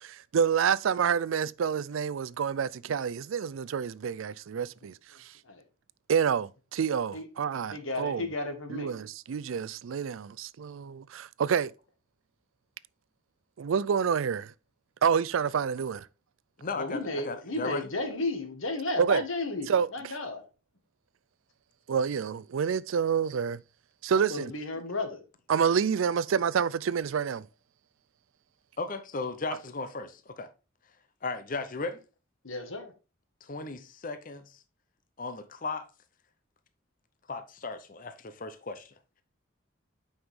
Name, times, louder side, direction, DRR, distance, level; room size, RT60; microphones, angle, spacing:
voice 1, 0.0-4.9 5.2-5.3 6.1-8.3 8.7-11.7 13.6-14.5 15.0-16.1 19.0-19.2 19.7-20.1 21.9-23.6 24.0-24.5 25.5-27.4, right 7 dB, 75° right, 0.4 m, -28 dB
voice 2, 7.7-8.9 16.8-20.4 24.3-25.2 32.4-32.9, left 2 dB, 75° left, 1.8 m, -33 dB
voice 3, 16.6-17.9 28.8-30.5 31.2-32.0 33.4-34.6 35.2-35.9 37.3-38.9, left 3 dB, 40° left, 0.7 m, -36 dB
8.7 x 5.6 x 3.6 m
head